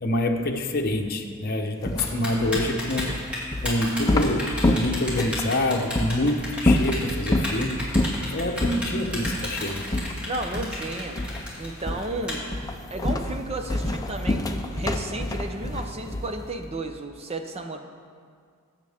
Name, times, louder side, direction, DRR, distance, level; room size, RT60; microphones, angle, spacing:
voice 1, 0.0-3.2 3.6-7.8 8.2-9.8, left 1 dB, 45° left, 3 dB, 1.0 m, -26 dB
sound 1, 1.8-5.5 5.9-6.1 6.6-7.6 7.9-8.3 8.6-8.8 9.2-9.5 9.9-10.9 11.2-11.5 11.9-12.2 12.5-16.4, left 1 dB, 15° left, 0.6 m, -26 dB
Typing, 2.0-12.3, left 1 dB, 5° right, 2.7 m, -33 dB
voice 2, 10.3-11.2 11.6-12.5 12.9-14.4 14.8-17.8, right 2 dB, 30° right, 5 dB, 0.8 m, -33 dB
19.5 x 8.2 x 3.6 m, 2.1 s
head